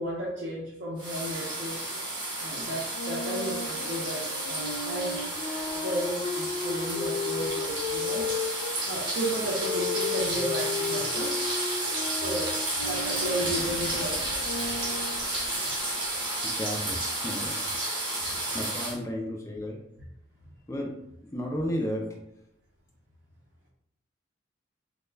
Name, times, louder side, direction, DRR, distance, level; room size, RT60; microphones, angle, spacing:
voice 1, 0.0-1.8 2.4-8.3 8.8-11.3 12.2-12.5 12.8-14.2 18.2-18.6, equal, 65° right, -5 dB, 0.5 m, -34 dB
sound 1, 1.0-19.0, right 1 dB, 25° right, 0.7 m, -32 dB
Wind instrument woodwind instrument, 2.9-8.8 9.6-15.3, left 4 dB, 90° left, 0.4 m, -35 dB
sound 2, 12.6-16.6, equal, 50° left, 0.9 m, -41 dB
voice 2, 16.4-17.6 18.5-19.8 20.7-21.0 21.3-22.1, equal, 15° left, 0 dB, 0.3 m, -33 dB
2.3 x 2.1 x 3.2 m, 0.79 s
head